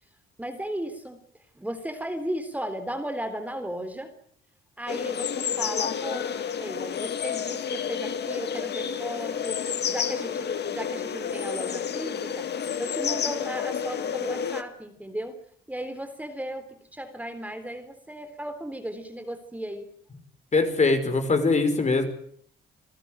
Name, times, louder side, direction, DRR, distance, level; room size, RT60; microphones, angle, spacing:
voice 1, 0.4-1.2 1.6-4.1 4.8-9.6 9.9-12.5 12.8-15.4 15.7-19.9, right 1 dB, 5° right, 8 dB, 3.6 m, -35 dB
sound 1, 4.9-14.6, left 7 dB, 55° left, 2.0 m, -30 dB
voice 2, 20.5-22.1, left 3 dB, 35° left, 8 dB, 5.4 m, -22 dB
27.5 x 15.0 x 9.0 m, 0.63 s
cardioid pair, 90°, 20 cm